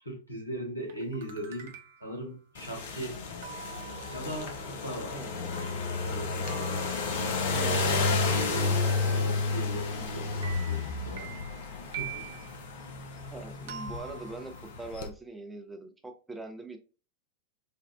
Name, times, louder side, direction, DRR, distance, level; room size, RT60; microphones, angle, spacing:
voice 1, 0.0-1.7 2.0-3.5 4.1-5.8 6.0-7.0 7.5-11.3 12.0-12.3, right 1 dB, 85° left, 1.1 m, -39 dB
sound 1, 0.9-2.2 3.4-10.1 10.4-12.6 13.7-15.0, right 7 dB, 60° right, 0.5 m, -46 dB
sound 2, 2.5-15.1, left 3 dB, 55° left, 0.6 m, -31 dB
voice 2, 5.0-5.4 13.3-16.8, right 2 dB, 10° right, 0.6 m, -42 dB
3.4 x 2.2 x 2.3 m
figure-of-eight pair, 90°, 0 cm